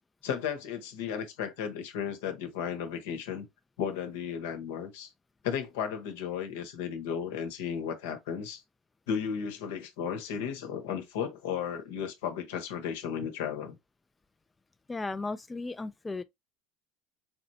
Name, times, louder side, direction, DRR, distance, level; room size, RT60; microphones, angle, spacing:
voice 1, 0.2-3.5 3.8-5.1 5.4-8.6 9.1-13.8, left 7 dB, 80° left, 1.0 m, -34 dB
voice 2, 14.9-16.2, left 3 dB, 15° left, 0.3 m, -35 dB
4.1 x 3.1 x 2.7 m
supercardioid pair, 100°, 0 cm